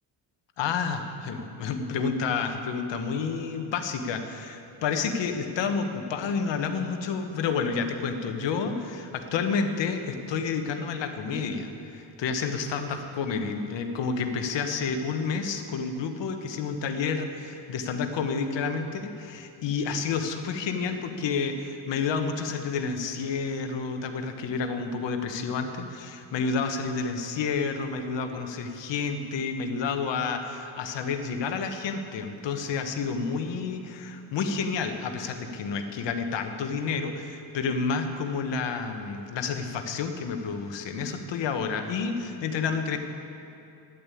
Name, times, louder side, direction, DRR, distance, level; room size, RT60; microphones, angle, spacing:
voice 1, 0.6-43.0, left 5 dB, 70° left, 6 dB, 1.4 m, -30 dB
12.5 x 10.5 x 8.4 m, 2.7 s
cardioid pair, 165°, 44 cm